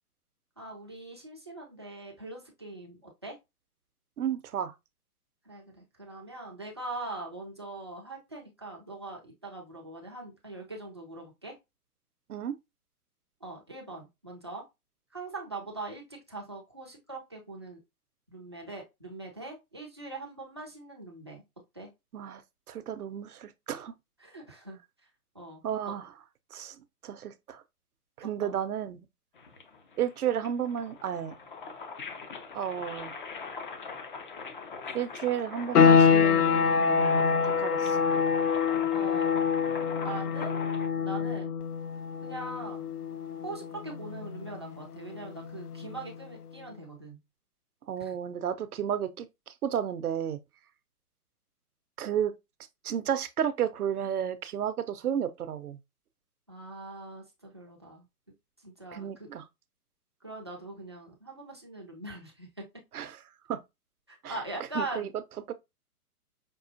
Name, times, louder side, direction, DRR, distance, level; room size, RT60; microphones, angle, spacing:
voice 1, 0.6-3.4 5.5-11.6 13.4-14.6 15.1-17.8 18.3-21.4 21.7-21.9 24.2-24.8 25.3-25.6 28.4-28.6 38.9-39.3 40.0-40.6 41.0-41.6 42.2-42.9 43.4-47.2 48.0-48.1 56.5-58.1 58.6-59.3 60.2-62.5 64.1-65.1, right 2 dB, 20° right, 0.4 m, -41 dB
voice 2, 4.2-4.7 12.3-12.5 22.1-22.4 22.7-23.9 25.6-26.1 26.5-26.8 27.0-27.6 28.2-29.0 30.0-31.3 32.5-33.2 34.9-38.0 47.9-50.4 52.0-52.3 52.8-55.8 58.9-59.4 62.9-63.2 63.5-63.6 64.2-64.4 64.7-65.1 65.5-65.6, right 9 dB, 70° right, 0.7 m, -32 dB
sound 1, 29.4-40.9, left 5 dB, 35° left, 0.5 m, -42 dB
sound 2, 35.7-46.3, left 6 dB, 75° left, 0.7 m, -26 dB
5.3 x 2.4 x 2.5 m
hypercardioid pair, 135°, 46 cm